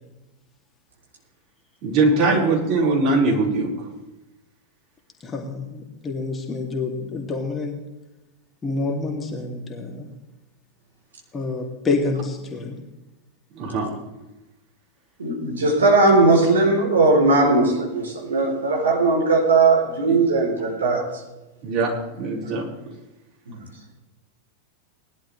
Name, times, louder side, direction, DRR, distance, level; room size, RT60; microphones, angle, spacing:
voice 1, 1.8-3.7 13.5-13.9 20.1-20.2 21.6-22.6, right 3 dB, 40° right, -3 dB, 4.7 m, -21 dB
voice 2, 5.2-7.8 8.6-10.1 11.3-12.8, left 3 dB, 20° left, 1 dB, 2.4 m, -28 dB
voice 3, 15.2-21.0, right 3 dB, 70° right, -1 dB, 3.7 m, -18 dB
20.0 x 11.5 x 3.3 m, 1.0 s
figure-of-eight pair, 90°, 0 cm